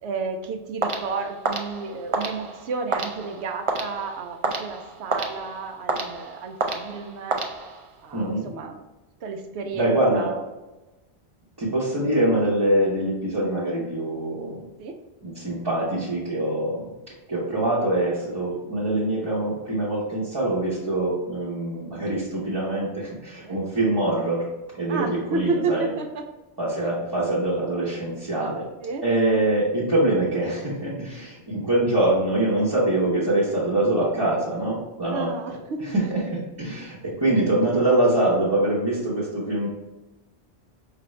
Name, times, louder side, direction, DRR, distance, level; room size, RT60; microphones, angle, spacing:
voice 1, 0.0-7.4 8.0-8.8 9.2-10.5 14.8-15.0 23.4-23.6 24.9-26.2 28.8-29.0 35.0-36.1, right 4 dB, 80° right, 5 dB, 0.9 m, -31 dB
sound 1, 0.8-8.1, right 3 dB, 45° right, 0.4 m, -30 dB
voice 2, 8.1-8.5 9.7-10.3 11.6-14.6 15.2-16.8 17.3-24.5 24.7-25.9 26.6-28.7 29.0-39.7, right 1 dB, 25° right, -9 dB, 0.9 m, -24 dB
5.4 x 2.5 x 3.1 m, 1.1 s
omnidirectional pair, 1.1 m